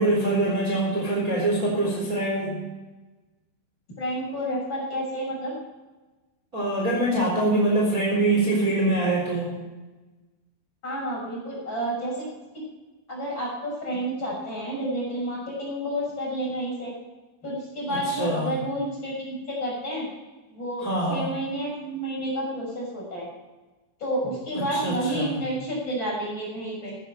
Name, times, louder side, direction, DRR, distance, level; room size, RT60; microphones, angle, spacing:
voice 1, 0.0-2.6 6.5-9.5 17.9-18.5 20.8-21.3 24.5-25.3, right 2 dB, 20° right, -3 dB, 4.0 m, -24 dB
voice 2, 4.0-5.5 10.8-12.3 13.1-16.9 17.4-20.0 20.5-23.3 24.0-27.0, right 1 dB, 25° left, -3 dB, 6.8 m, -30 dB
15.5 x 14.5 x 4.5 m, 1.2 s
omnidirectional pair, 5.4 m